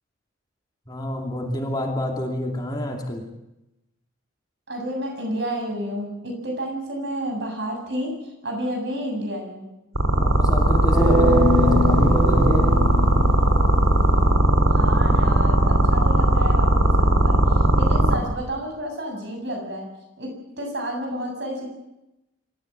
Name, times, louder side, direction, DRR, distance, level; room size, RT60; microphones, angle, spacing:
voice 1, 0.9-3.3 10.1-12.8, left 1 dB, 20° left, 2 dB, 2.7 m, -28 dB
voice 2, 4.7-9.7 14.7-19.9 20.2-21.7, right 1 dB, 55° right, 3 dB, 7.6 m, -31 dB
sound 1, 10.0-18.2, right 1 dB, 90° right, 3.4 m, -18 dB
sound 2, 10.9-13.9, equal, ahead, 5.5 m, -23 dB
26.5 x 14.0 x 8.1 m, 0.91 s
head